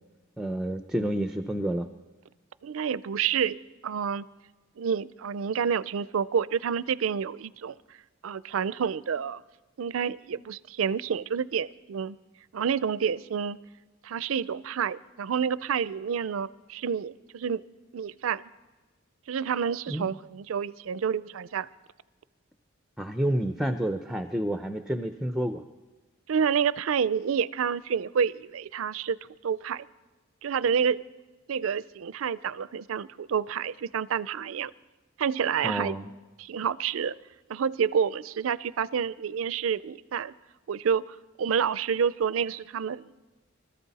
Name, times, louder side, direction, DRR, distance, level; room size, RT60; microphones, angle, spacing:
voice 1, 0.4-1.9 19.9-20.2 23.0-25.6 35.6-36.1, right 1 dB, ahead, 7 dB, 0.5 m, -29 dB
voice 2, 2.6-4.2 4.8-7.8 8.2-9.4 9.8-12.2 12.5-13.6 14.0-17.6 17.9-18.5 19.3-21.7 26.3-29.2 29.4-29.9 30.4-31.1 31.5-34.7 35.2-36.0 36.4-37.1 37.5-40.3 40.7-43.2, right 7 dB, 85° right, 18 dB, 0.4 m, -29 dB
24.5 x 13.5 x 4.1 m, 1.2 s
head